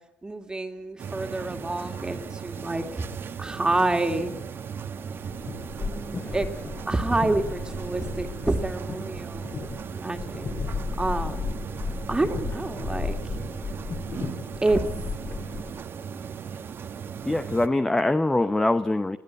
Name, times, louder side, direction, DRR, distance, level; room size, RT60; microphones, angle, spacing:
voice 1, 0.2-3.0 3.4-4.3 5.8-6.5 6.8-9.5 9.9-10.4 11.0-11.5 12.1-13.2 14.6-14.8, right 2 dB, 15° right, 5 dB, 2.4 m, -28 dB
sound 1, 1.0-17.7, right 7 dB, 55° right, 1.4 m, -37 dB
sound 2, 5.2-15.8, left 5 dB, 50° left, 6.1 m, -35 dB
voice 2, 17.2-19.2, left 2 dB, 15° left, 10 dB, 1.0 m, -23 dB
21.5 x 15.5 x 9.8 m, 0.87 s
cardioid pair, 85°, 5 cm